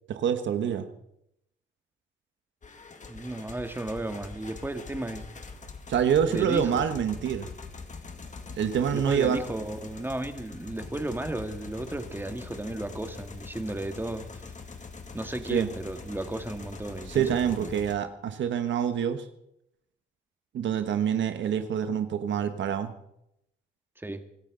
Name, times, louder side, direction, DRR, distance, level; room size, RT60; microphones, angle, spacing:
voice 1, 0.1-0.9 5.9-7.5 8.6-9.4 15.5-15.7 17.1-19.2 20.5-22.9, right 8 dB, 75° right, 9 dB, 1.3 m, -26 dB
sound 1, 2.6-18.0, left 4 dB, 40° left, 2.1 m, -43 dB
voice 2, 3.1-5.3 6.3-6.8 8.9-14.4 15.1-17.7 24.0-24.2, right 1 dB, 10° right, 7 dB, 1.9 m, -34 dB
25.0 x 13.5 x 3.9 m, 0.77 s
cardioid pair, 85°, 19 cm